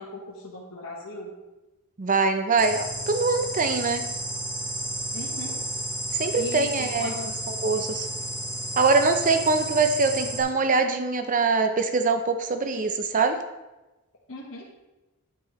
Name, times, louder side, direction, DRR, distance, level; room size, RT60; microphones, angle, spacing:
voice 1, 0.0-1.3 5.1-5.6 6.3-7.3 14.3-14.9, left 1 dB, 60° left, -5 dB, 1.3 m, -38 dB
voice 2, 2.0-4.0 6.2-7.1 7.5-8.1 8.8-13.4, right 4 dB, 35° right, 7 dB, 0.5 m, -23 dB
sound 1, 2.6-10.4, right 1 dB, ahead, 2.7 m, -32 dB
9.7 x 8.4 x 3.1 m, 1.1 s
head